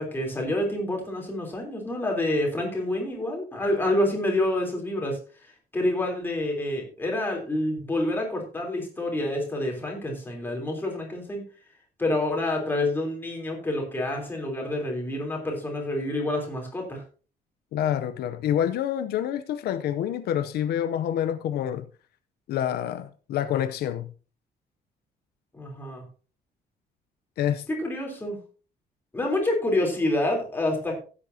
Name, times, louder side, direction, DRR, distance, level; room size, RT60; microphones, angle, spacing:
voice 1, 0.0-11.4 12.0-17.0 25.5-26.0 27.7-28.4 29.1-31.0, left 1 dB, 15° left, 3.5 m, -28 dB
voice 2, 17.7-21.8 22.5-24.1 27.4-27.7, left 10 dB, 80° left, 0.7 m, -27 dB
15.5 x 8.5 x 2.8 m
cardioid pair, 165°, 16 cm